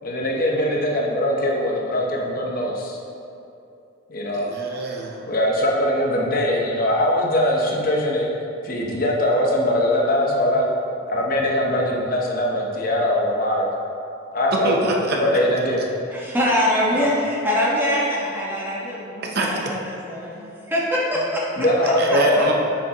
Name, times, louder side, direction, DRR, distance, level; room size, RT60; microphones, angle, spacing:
voice 1, 0.0-3.0 4.1-4.5 5.3-8.3 8.6-10.7 11.1-13.7 14.3-15.8 16.9-17.1 21.6-22.5, left 1 dB, 45° left, -1 dB, 0.8 m, -21 dB
voice 2, 4.3-5.2 14.5-15.2 19.2-19.5 21.8-22.5, right 2 dB, 50° right, -1 dB, 0.7 m, -26 dB
voice 3, 16.1-21.4 21.8-22.4, equal, 10° right, -6 dB, 1.2 m, -24 dB
8.0 x 6.4 x 2.9 m, 2.7 s
head